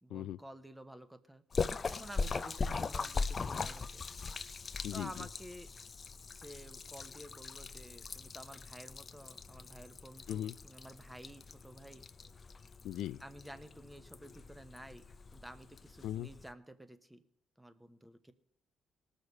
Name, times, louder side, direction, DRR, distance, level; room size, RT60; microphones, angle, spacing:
voice 1, 0.0-1.4 1.9-4.0 4.9-5.7 6.1-12.1 13.2-15.0 15.3-17.2 17.6-18.3, right 1 dB, 5° right, 10 dB, 1.0 m, -51 dB
Splash splatter, 1.5-16.5, left 4 dB, 35° left, 0.5 m, -41 dB
voice 2, 4.8-5.3 10.3-10.5 12.8-13.2 16.0-16.3, left 12 dB, 85° left, 15 dB, 0.3 m, -38 dB
19.0 x 6.5 x 5.3 m, 0.77 s
cardioid pair, 110°, 0 cm